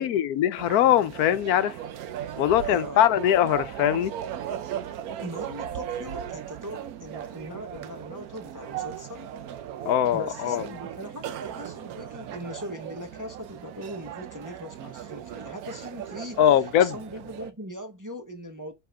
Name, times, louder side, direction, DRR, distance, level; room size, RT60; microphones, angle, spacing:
voice 1, 0.0-1.8 2.4-4.2 9.9-10.6 16.4-17.0, left 10 dB, 80° left, 1.1 m, -22 dB
sound 1, 0.6-17.5, right 10 dB, 75° right, 1.2 m, -37 dB
voice 2, 2.7-3.1 5.2-9.3 10.1-18.7, equal, 15° right, 0.8 m, -40 dB
7.5 x 3.7 x 3.5 m
omnidirectional pair, 1.6 m